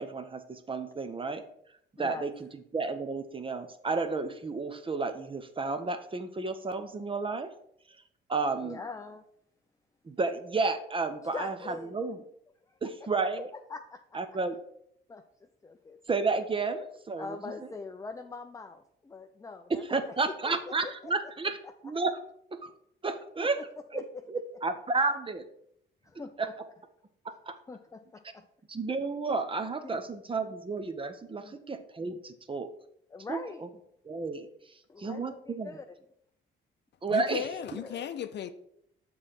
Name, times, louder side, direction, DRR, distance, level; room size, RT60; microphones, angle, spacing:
voice 1, 0.0-1.4 2.0-2.3 2.7-7.5 8.3-8.8 10.1-12.2 12.8-13.5 14.1-14.5 16.1-17.3 19.9-21.6 21.8-22.1 22.6-22.7 23.0-23.6 23.9-24.0 24.3-25.4 26.4-26.5 27.5-27.6 28.7-32.7 33.3-33.4 34.1-34.5 35.0-35.7 37.0-37.4, right 4 dB, 25° right, 0.7 m, -31 dB
voice 2, 2.0-2.3 8.6-9.2 11.3-12.0 12.7-13.1 13.7-14.2 15.1-16.0 17.2-20.6 20.8-21.3 21.6-21.7 23.4-24.0 26.0-26.5 27.7-28.4 29.8-30.0 31.4-31.6 33.1-33.7 34.9-35.8 37.8-38.1, left 4 dB, 15° left, 0.4 m, -43 dB
voice 3, 37.1-38.5, left 9 dB, 60° left, 0.6 m, -35 dB
6.2 x 3.9 x 5.8 m
cardioid pair, 90°, 20 cm